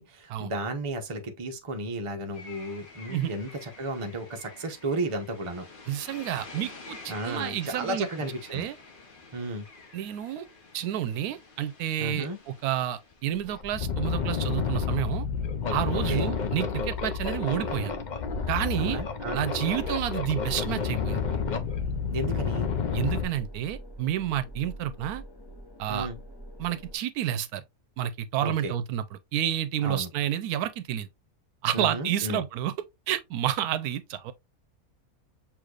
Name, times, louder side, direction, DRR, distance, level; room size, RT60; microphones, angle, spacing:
voice 1, 0.0-5.7 7.1-8.7 9.3-9.7 12.0-12.4 15.9-16.3 18.7-19.4 22.1-22.7 25.9-26.2 28.4-28.7 29.8-30.1 31.7-32.4, right 1 dB, 30° right, 0.7 m, -33 dB
sound 1, 2.3-13.7, left 3 dB, 40° left, 1.0 m, -49 dB
voice 2, 5.9-8.1 8.5-8.8 9.9-10.5 10.7-15.3 15.7-17.9 18.5-19.0 19.3-21.2 22.9-25.2 25.8-26.1 26.6-27.6 28.0-31.1 31.6-32.7 33.1-34.3, right 11 dB, 80° right, 1.1 m, -30 dB
sound 2, 12.8-12.9 13.4-23.2, left 6 dB, 70° left, 0.4 m, -30 dB
sound 3, 16.2-27.0, right 1 dB, 20° left, 0.7 m, -44 dB
6.4 x 3.1 x 2.4 m
omnidirectional pair, 1.6 m